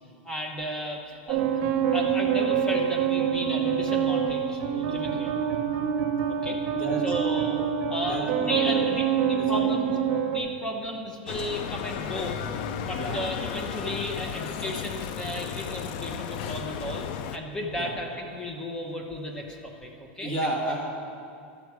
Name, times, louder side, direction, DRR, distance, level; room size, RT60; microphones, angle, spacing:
voice 1, 0.2-1.6 1.9-5.3 6.4-6.6 7.0-7.6 7.9-10.0 10.3-12.4 12.9-17.0 17.3-20.5, equal, 15° left, 2 dB, 1.0 m, -34 dB
sound 1, 1.3-10.4, right 8 dB, 50° right, 1.0 m, -26 dB
voice 2, 6.7-7.0 8.0-8.8 9.4-9.7 13.0-13.2 17.8-17.9 20.2-20.8, right 1 dB, 40° left, -2 dB, 2.1 m, -32 dB
Bicycle, 11.3-17.4, left 8 dB, 55° left, 0.5 m, -34 dB
11.5 x 6.9 x 4.8 m, 2.5 s
supercardioid pair, 155°, 5 cm